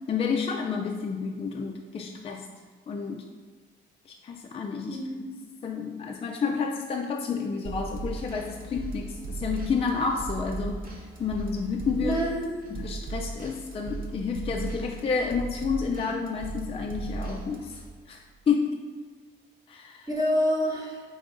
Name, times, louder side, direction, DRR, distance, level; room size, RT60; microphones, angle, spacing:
voice 1, 0.1-2.5 2.9-3.2 4.1-5.0 5.6-10.8 11.2-12.2 12.7-17.8 18.1-18.8 19.7-20.1, left 5 dB, 30° left, 1 dB, 0.3 m, -30 dB
voice 2, 4.9-5.4 12.0-12.8 20.1-21.0, equal, 20° right, -3 dB, 1.0 m, -28 dB
sound 1, 7.6-17.9, right 3 dB, 45° right, 0.7 m, -37 dB
3.7 x 3.4 x 3.8 m, 1.5 s
cardioid pair, 90°, 20 cm